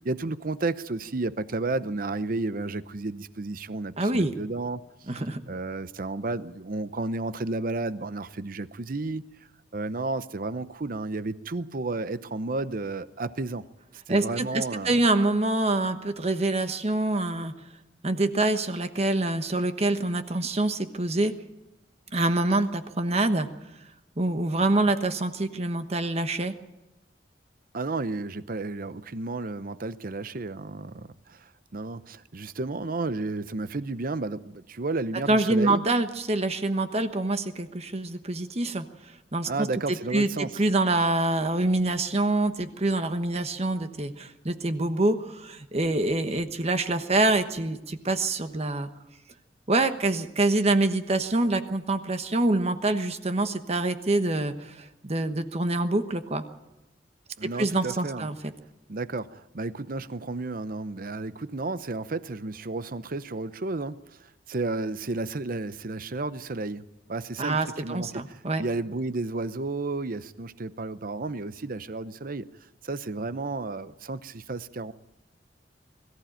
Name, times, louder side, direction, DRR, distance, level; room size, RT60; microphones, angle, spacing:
voice 1, 0.0-5.1 5.5-9.2 9.7-13.7 14.1-15.0 27.7-35.8 39.5-40.5 57.4-58.3 58.9-72.5 72.8-74.9, right 3 dB, 50° right, 0.7 m, -32 dB
voice 2, 4.0-4.3 5.1-5.4 14.1-17.5 18.0-21.3 22.1-23.5 24.2-26.5 35.3-38.8 39.3-39.7 40.1-48.9 49.7-56.4 57.6-58.4 67.4-68.6, right 2 dB, 35° right, 1.2 m, -25 dB
21.5 x 14.5 x 9.0 m
head